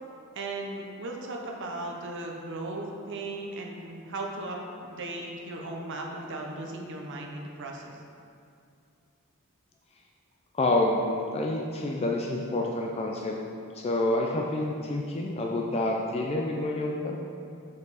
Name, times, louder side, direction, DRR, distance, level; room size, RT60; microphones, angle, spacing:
voice 1, 0.3-8.0, right 2 dB, 55° right, 0 dB, 0.7 m, -37 dB
voice 2, 10.5-13.4 13.7-17.2, left 2 dB, 30° left, -1 dB, 0.4 m, -28 dB
6.8 x 5.3 x 4.1 m, 2.5 s
head